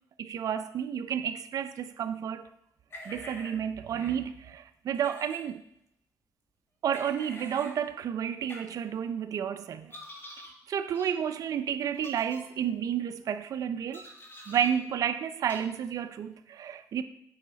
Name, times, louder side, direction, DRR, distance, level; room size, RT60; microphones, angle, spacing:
voice 1, 0.2-2.5 3.1-5.6 6.8-10.0 10.7-14.1 14.5-17.0, right 8 dB, 60° right, 0.5 m, -31 dB
sound 1, 2.9-3.5 3.9-4.1 4.9-5.4 6.9-7.7 8.5-8.6 9.9-10.5 10.9-11.1 11.9-12.4 13.9-14.7 15.5-15.6, left 1 dB, 35° left, 1.9 m, -46 dB
8.3 x 5.5 x 4.0 m
cardioid pair, 105°, 7 cm